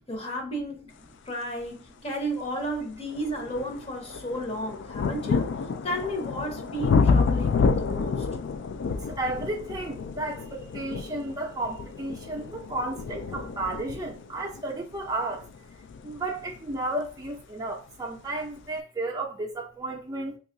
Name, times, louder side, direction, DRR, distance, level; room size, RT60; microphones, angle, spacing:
voice 1, 0.1-0.9 1.3-5.5 5.8-8.3, equal, 30° left, 0.8 m, -33 dB
sound 1, 2.1-2.2 2.7-17.4 18.3-18.4, left 5 dB, 75° left, 0.3 m, -29 dB
voice 2, 9.1-15.5 16.0-20.4, right 2 dB, 20° right, 0.5 m, -33 dB
2.8 x 2.3 x 3.8 m
head